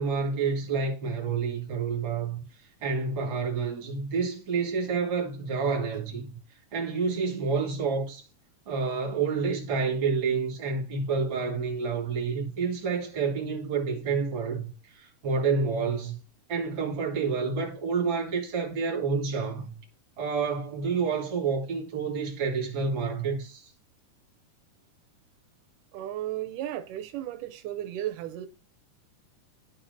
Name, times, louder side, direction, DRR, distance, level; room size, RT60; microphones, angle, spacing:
voice 1, 0.0-2.4 2.8-6.4 6.7-8.3 8.7-16.2 16.5-19.8 20.2-23.7, right 5 dB, 40° right, 2.4 m, -29 dB
voice 2, 25.9-28.5, right 12 dB, 85° right, 2.1 m, -34 dB
12.5 x 4.3 x 2.6 m
omnidirectional pair, 3.7 m